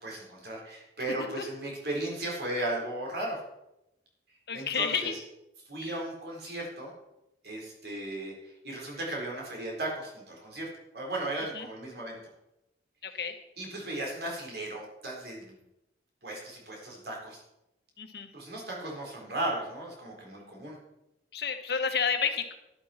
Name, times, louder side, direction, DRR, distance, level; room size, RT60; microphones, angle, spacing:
voice 1, 0.0-3.4 4.5-5.1 5.7-6.9 7.4-10.7 10.9-12.2 13.1-13.2 13.6-15.6 16.2-17.4 18.3-20.8, right 1 dB, 60° right, -1 dB, 4.1 m, -36 dB
voice 2, 4.5-5.1 5.8-6.0 11.5-11.7 13.0-13.3 18.0-18.3 21.3-22.5, left 6 dB, 65° left, 6 dB, 1.4 m, -30 dB
11.5 x 11.5 x 4.4 m, 0.90 s
head